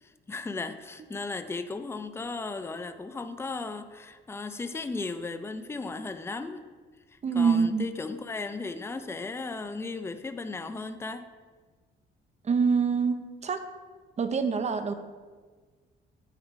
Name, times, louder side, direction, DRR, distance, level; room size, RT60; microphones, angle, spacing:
voice 1, 0.0-6.6 7.1-11.3, left 3 dB, 10° left, 9 dB, 0.4 m, -36 dB
voice 2, 7.2-7.9 12.4-13.6 14.2-14.9, right 5 dB, 35° right, 9 dB, 0.6 m, -25 dB
8.8 x 3.6 x 4.7 m, 1.4 s
cardioid pair, 90°, 20 cm